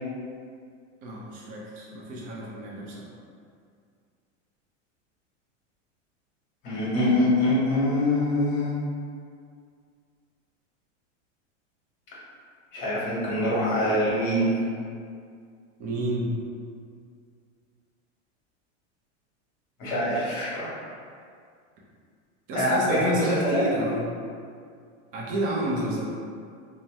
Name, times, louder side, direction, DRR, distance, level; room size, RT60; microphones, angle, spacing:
voice 1, 1.0-3.1 15.8-16.3 22.5-24.1 25.1-26.0, right 1 dB, 25° right, -4 dB, 0.4 m, -30 dB
voice 2, 6.6-8.8 12.7-14.5 19.8-20.7 22.5-23.6, left 1 dB, 45° left, -8 dB, 1.3 m, -24 dB
2.7 x 2.0 x 3.2 m, 2.2 s
supercardioid pair, 145°, 37 cm